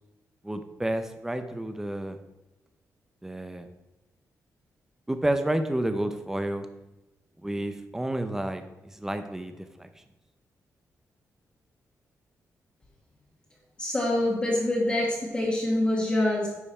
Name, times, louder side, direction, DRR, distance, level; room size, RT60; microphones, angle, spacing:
voice 1, 0.4-2.2 3.2-3.7 5.1-6.7 7.4-8.6 8.9-9.9, right 1 dB, 10° right, 8 dB, 0.6 m, -30 dB
voice 2, 13.8-16.5, left 1 dB, 15° left, -4 dB, 1.4 m, -25 dB
9.3 x 5.3 x 4.3 m, 1.0 s
wide cardioid pair, 180°, 6 cm